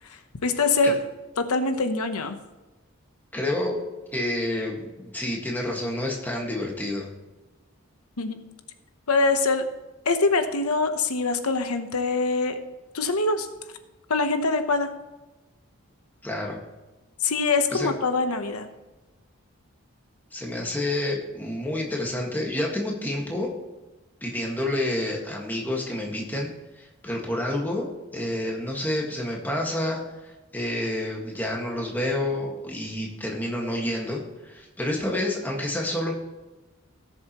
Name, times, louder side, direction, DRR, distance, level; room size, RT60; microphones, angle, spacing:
voice 1, 0.0-1.0 1.4-2.4 8.2-8.4 9.1-9.7 10.1-12.6 12.9-13.5 14.1-14.9 17.2-18.7, left 3 dB, 85° left, 8 dB, 0.9 m, -24 dB
voice 2, 3.3-3.8 4.1-7.1 16.2-16.6 17.7-17.9 20.3-23.5 24.2-26.5 26.8-36.1, left 1 dB, 10° left, -1 dB, 1.7 m, -29 dB
17.0 x 7.2 x 3.0 m, 1.1 s
head